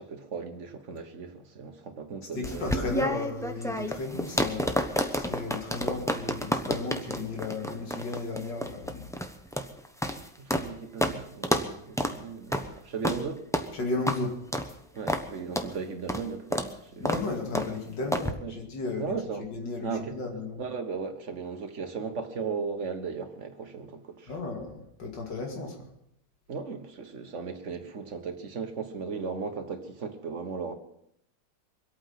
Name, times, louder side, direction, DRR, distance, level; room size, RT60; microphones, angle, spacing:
voice 1, 0.0-2.9 10.4-13.4 14.9-17.2 18.4-18.5 19.0-19.4 19.8-20.1 20.6-24.3 26.5-30.7, right 5 dB, 45° right, 1.6 m, -36 dB
voice 2, 2.3-9.1 13.7-14.3 17.0-20.6 24.3-25.8, left 3 dB, 90° left, 3.0 m, -34 dB
sound 1, 2.4-10.7 11.0-11.2 11.4-11.7 12.0-12.2 12.5-12.7 13.0-13.2 13.5-13.7 14.1-14.2 14.5-14.7 15.1-15.3 15.5-15.7 16.1-16.2 16.5-16.7 17.0-17.2 17.5-17.7 18.1-18.3, equal, 5° left, 0.6 m, -29 dB
24.5 x 8.8 x 5.8 m
omnidirectional pair, 1.9 m